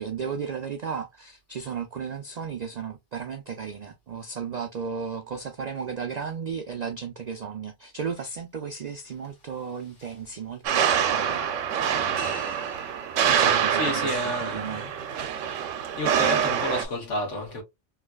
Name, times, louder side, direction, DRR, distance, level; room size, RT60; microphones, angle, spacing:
voice 1, 0.0-11.7 13.2-14.9, right 6 dB, 65° right, 0.4 m, -34 dB
sound 1, 10.6-16.8, right 8 dB, 85° right, 1.0 m, -25 dB
voice 2, 13.7-14.9 15.3-15.6 15.9-17.6, left 1 dB, 75° left, 1.7 m, -31 dB
3.2 x 3.0 x 2.3 m
omnidirectional pair, 1.3 m